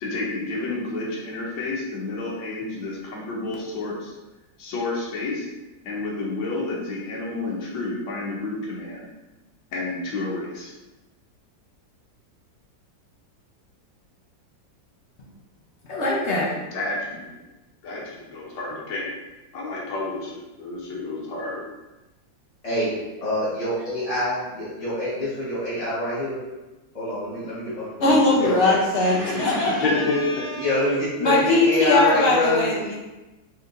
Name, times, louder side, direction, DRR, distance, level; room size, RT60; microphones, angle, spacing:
voice 1, 0.0-4.1 4.6-5.5 5.8-9.1 9.7-10.7 16.7-17.4 17.8-19.1 19.5-21.6 29.1-30.5, left 2 dB, 85° left, -4 dB, 1.6 m, -30 dB
voice 2, 15.9-16.5 28.0-29.9 31.2-33.0, left 2 dB, 60° left, -4 dB, 0.7 m, -20 dB
voice 3, 23.2-26.4 26.9-28.1 28.4-31.3 31.6-32.7, left 1 dB, 25° left, -11 dB, 0.9 m, -26 dB
4.3 x 3.5 x 2.5 m, 1.1 s
omnidirectional pair, 2.0 m